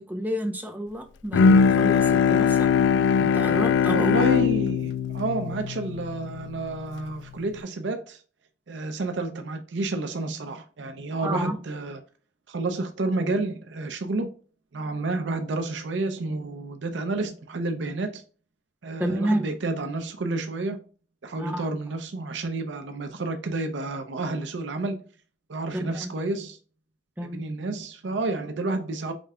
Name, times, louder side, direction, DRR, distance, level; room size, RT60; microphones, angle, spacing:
voice 1, 0.0-2.7 3.2-4.1 11.2-11.6 19.0-19.5 21.4-21.7 25.7-26.1 27.2-27.4, equal, 10° right, 0.7 m, -30 dB
Bowed string instrument, 1.3-6.8, left 6 dB, 85° left, 0.3 m, -21 dB
voice 2, 3.9-8.2 8.7-12.0 12.5-14.3 14.7-18.2 18.8-20.8 21.2-25.0 25.5-26.6 27.3-29.1, right 2 dB, 85° right, 0.6 m, -30 dB
5.1 x 3.2 x 2.4 m
head